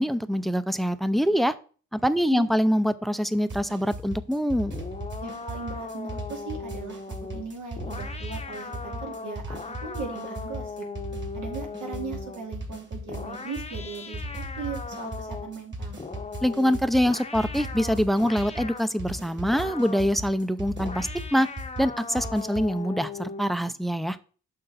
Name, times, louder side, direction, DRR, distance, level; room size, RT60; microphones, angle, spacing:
voice 1, 0.0-1.5 1.9-4.7 16.4-21.5 21.8-24.2, equal, ahead, 14 dB, 0.5 m, -24 dB
sound 1, 3.5-22.8, equal, 35° right, 2.3 m, -37 dB
sound 2, 4.7-12.5 13.1-15.6 16.0-18.9 19.5-20.1 20.8-23.6, left 4 dB, 20° left, 0.8 m, -39 dB
voice 2, 5.2-10.9 11.3-16.0, right 5 dB, 80° right, 1 dB, 2.6 m, -38 dB
7.8 x 5.5 x 4.1 m, 0.40 s
cardioid pair, 95°, 30 cm